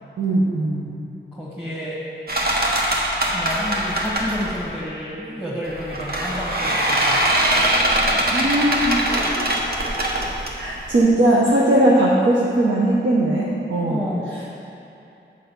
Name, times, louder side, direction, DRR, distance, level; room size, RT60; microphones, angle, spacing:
voice 1, 0.2-0.9 8.3-9.5 10.6-14.0 14.3-14.5, right 1 dB, 85° right, -5 dB, 0.9 m, -19 dB
voice 2, 1.3-2.0 3.3-7.2 13.9-14.3, equal, 5° right, -9 dB, 1.4 m, -30 dB
sound 1, 2.3-4.6 5.7-11.0, right 1 dB, 55° right, 1.1 m, -22 dB
8.1 x 4.9 x 6.9 m, 2.7 s
wide cardioid pair, 115°, 19 cm